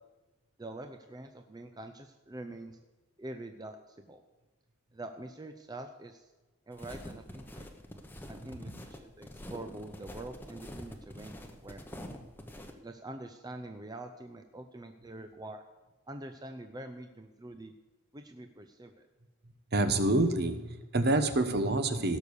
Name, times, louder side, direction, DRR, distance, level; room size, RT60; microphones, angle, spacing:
voice 1, 0.6-2.8 3.2-4.2 4.9-6.3 6.7-7.7 8.3-11.8 12.8-15.6 16.1-17.7 18.1-19.1, right 2 dB, 20° right, 6 dB, 0.6 m, -45 dB
sound 1, 6.7-12.7, left 1 dB, 10° left, 0.9 m, -46 dB
voice 2, 8.5-8.8 19.7-22.2, right 2 dB, 45° right, 9 dB, 1.0 m, -28 dB
17.0 x 6.5 x 7.0 m, 1.1 s
head